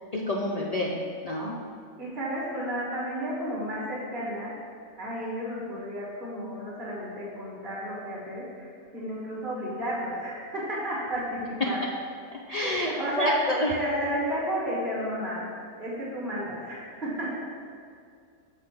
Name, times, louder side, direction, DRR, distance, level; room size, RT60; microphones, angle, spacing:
voice 1, 0.1-1.0 1.2-1.5 12.5-12.9 13.2-13.7, left 1 dB, 70° left, -3 dB, 0.3 m, -27 dB
voice 2, 2.0-4.5 5.0-8.7 8.9-11.8 12.6-13.3 13.7-15.4 15.8-17.4, equal, 35° right, -7 dB, 1.7 m, -32 dB
7.5 x 3.2 x 5.9 m, 2.3 s
omnidirectional pair, 1.4 m